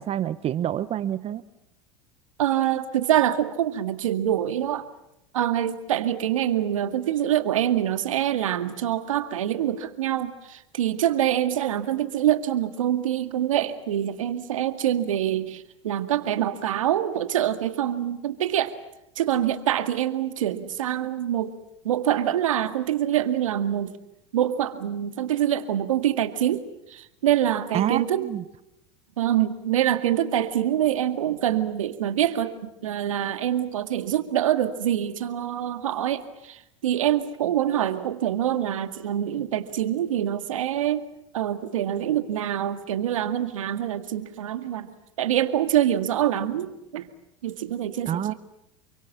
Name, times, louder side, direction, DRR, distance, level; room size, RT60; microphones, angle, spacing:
voice 1, 0.0-1.4 27.7-28.4 48.0-48.3, right 11 dB, 35° right, 15 dB, 0.9 m, -27 dB
voice 2, 2.4-4.9 5.3-18.8 19.2-21.6 21.8-24.0 24.3-28.3 29.2-41.0 41.3-44.9 45.2-47.1 47.4-48.3, right 11 dB, 85° right, 9 dB, 2.0 m, -25 dB
29.0 x 23.5 x 7.4 m, 0.85 s
hypercardioid pair, 95°, 17 cm